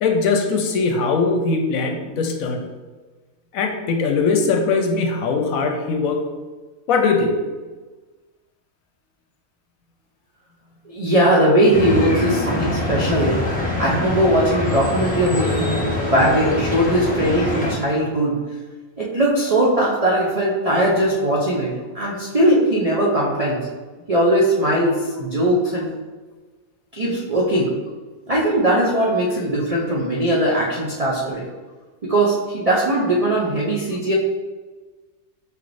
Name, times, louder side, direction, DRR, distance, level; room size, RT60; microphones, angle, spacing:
voice 1, 0.0-2.6 3.5-6.2 6.9-7.3, left 4 dB, 80° left, 3 dB, 1.0 m, -20 dB
voice 2, 10.9-13.4 13.8-18.4 19.0-23.7 24.1-25.9 26.9-27.7 28.3-31.5 32.0-34.1, right 1 dB, 60° right, -5 dB, 0.3 m, -19 dB
sound 1, 11.7-17.7, left 2 dB, 5° left, 0.9 m, -24 dB
4.8 x 3.2 x 2.5 m, 1.3 s
omnidirectional pair, 1.5 m